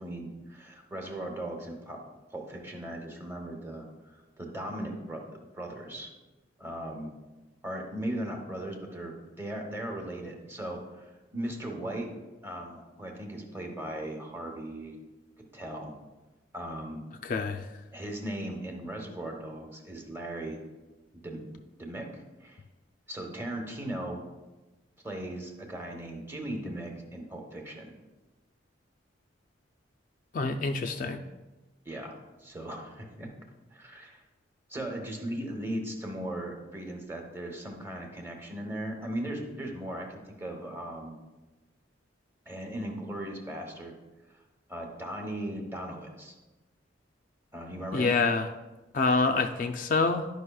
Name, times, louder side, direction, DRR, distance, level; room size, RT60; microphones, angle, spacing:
voice 1, 0.0-2.0 2.3-6.1 6.6-7.1 7.6-12.1 12.4-14.9 15.4-15.9 16.5-17.0 17.9-20.6 21.2-21.4 21.8-22.6 23.1-24.2 25.0-27.9 31.8-32.1 32.4-33.3 33.7-34.2 34.7-41.2 42.5-43.9 44.3-44.4 44.7-46.3 47.5-48.2, right 1 dB, 10° right, 2 dB, 0.8 m, -38 dB
voice 2, 17.2-17.7 30.3-31.2 47.9-48.5 48.9-50.3, left 4 dB, 45° left, 5 dB, 0.3 m, -26 dB
11.0 x 5.3 x 2.3 m, 1.1 s
head